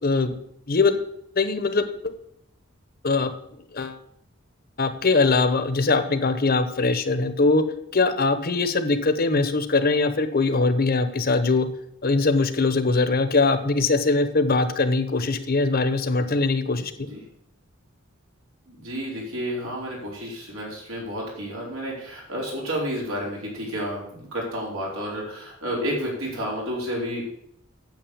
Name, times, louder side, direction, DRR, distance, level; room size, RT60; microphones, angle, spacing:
voice 1, 0.0-0.4 0.7-1.0 1.4-1.9 3.0-3.3 3.7-4.0 4.8-7.6 7.9-11.7 12.0-16.9, left 3 dB, 45° left, 10 dB, 1.0 m, -21 dB
voice 2, 18.7-27.2, equal, 85° right, -3 dB, 4.5 m, -31 dB
9.1 x 7.7 x 7.1 m, 0.73 s
head